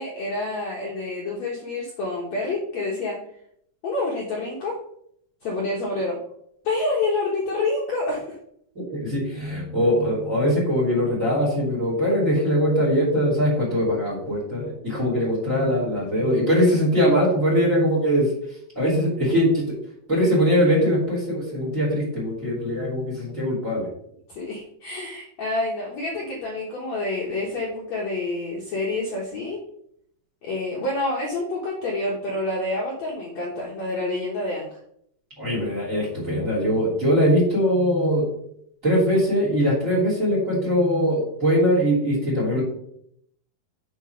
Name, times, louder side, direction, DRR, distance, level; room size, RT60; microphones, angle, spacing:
voice 1, 0.0-3.2 3.8-4.8 5.4-6.2 6.6-8.4 24.3-29.6 30.4-34.8, left 2 dB, 60° left, -3 dB, 1.9 m, -28 dB
voice 2, 8.7-18.3 18.7-19.7 20.1-23.9 35.4-38.3 38.8-42.6, equal, 20° right, -3 dB, 3.0 m, -21 dB
7.1 x 4.7 x 5.7 m, 0.69 s
omnidirectional pair, 4.4 m